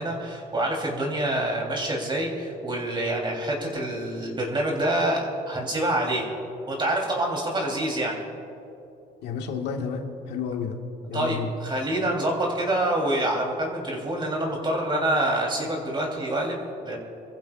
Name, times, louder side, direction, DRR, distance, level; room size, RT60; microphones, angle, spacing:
voice 1, 0.0-6.3 6.7-8.2 11.1-17.0, right 1 dB, 30° right, -1 dB, 3.4 m, -26 dB
voice 2, 9.2-10.8 11.1-11.5, left 6 dB, 85° left, 3 dB, 1.7 m, -31 dB
28.0 x 14.5 x 2.5 m, 2.7 s
cardioid pair, 110°, 17 cm